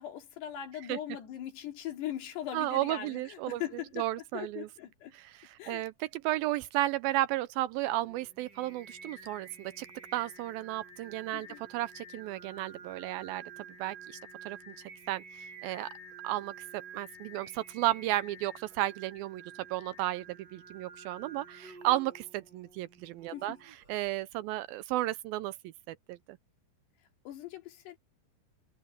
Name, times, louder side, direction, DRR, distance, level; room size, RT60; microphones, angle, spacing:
voice 1, 0.0-4.1 4.3-5.1 5.6-5.8 11.3-11.6 23.3-23.6 27.3-28.0, left 11 dB, 80° left, 4.6 m, -40 dB
voice 2, 2.5-3.6 4.0-4.7 5.1-9.9 10.1-13.4 13.8-14.2 14.5-14.8 15.1-15.9 16.2-16.5 16.9-19.4 19.7-23.6 23.9-26.4, right 15 dB, 85° right, 2.2 m, -33 dB
Singing, 7.9-24.1, right 4 dB, 40° right, 5.1 m, -50 dB
omnidirectional pair, 4.7 m